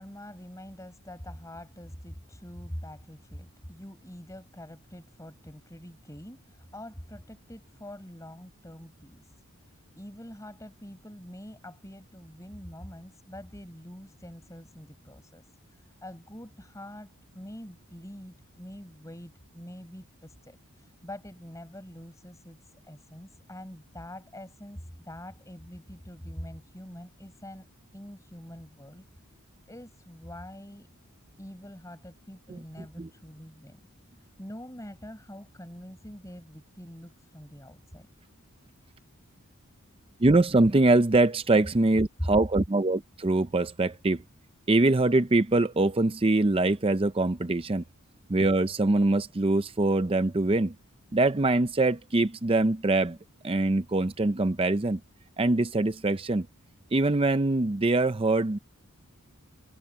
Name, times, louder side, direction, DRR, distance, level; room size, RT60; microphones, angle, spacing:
voice 1, 0.0-27.7 27.9-30.9 31.4-33.8 34.1-38.1 42.2-42.3, equal, 15° left, 5.4 m, -44 dB
voice 2, 40.2-44.2 44.7-47.8 48.3-50.7 51.1-53.2 53.4-55.0 55.4-56.5 56.9-58.6, right 2 dB, 25° right, 0.5 m, -23 dB
head